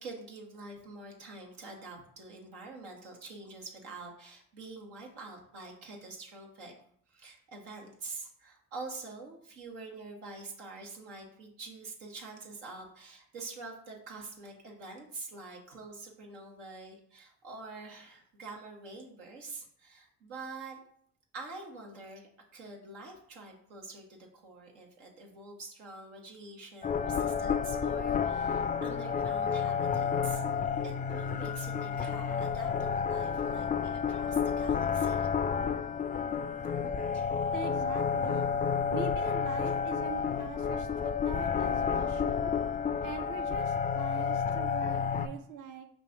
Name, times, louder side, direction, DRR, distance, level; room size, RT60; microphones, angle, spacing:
voice 1, 0.0-6.7 7.1-20.8 21.3-30.4 30.8-35.3 37.1-37.3, right 3 dB, 85° right, -1 dB, 0.9 m, -46 dB
sound 1, 26.8-45.3, left 6 dB, 25° left, 0.3 m, -30 dB
voice 2, 37.5-38.5 38.9-42.6 43.0-45.9, right 6 dB, 50° right, 5 dB, 0.6 m, -43 dB
5.3 x 2.6 x 3.3 m, 0.64 s
hypercardioid pair, 45°, 39 cm